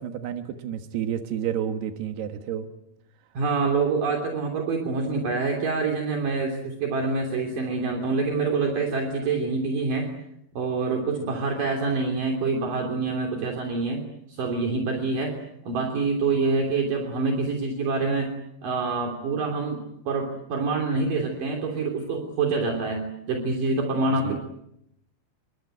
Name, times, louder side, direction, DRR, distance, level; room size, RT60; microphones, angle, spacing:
voice 1, 0.0-2.7 24.2-24.4, right 9 dB, 90° right, 5 dB, 3.5 m, -30 dB
voice 2, 3.3-10.1 10.5-14.0 14.3-15.3 15.6-18.3 18.6-24.4, right 4 dB, 60° right, 2 dB, 4.7 m, -26 dB
30.0 x 24.0 x 8.0 m, 0.78 s
omnidirectional pair, 4.5 m